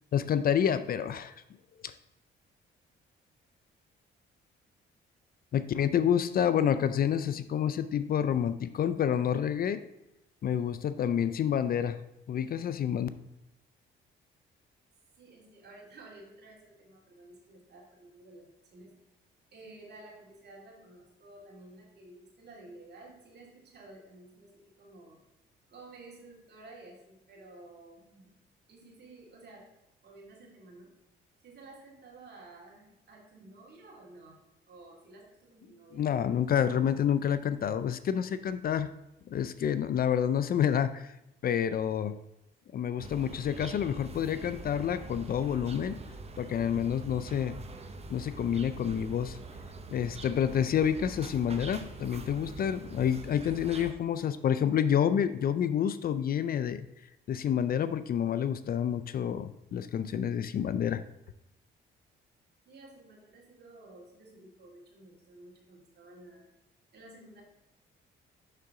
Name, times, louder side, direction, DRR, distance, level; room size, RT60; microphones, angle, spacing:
voice 1, 0.1-1.3 1.8-1.9 5.5-9.8 10.4-12.0 12.3-13.1 35.9-38.9 39.3-41.1 41.4-42.2 42.7-46.0 46.4-47.6 48.1-49.4 49.9-56.9 57.3-61.0, left 9 dB, 50° left, 13 dB, 0.4 m, -28 dB
voice 2, 15.2-18.9 19.5-25.2 25.7-28.3 28.7-29.7 30.0-30.9 31.4-34.4 34.7-36.0 62.7-66.5 66.9-67.4, right 2 dB, 55° right, -1 dB, 2.3 m, -52 dB
sound 1, 43.0-53.9, right 3 dB, 30° right, 0.8 m, -44 dB
6.6 x 5.9 x 3.7 m, 0.90 s
cardioid pair, 90°, 20 cm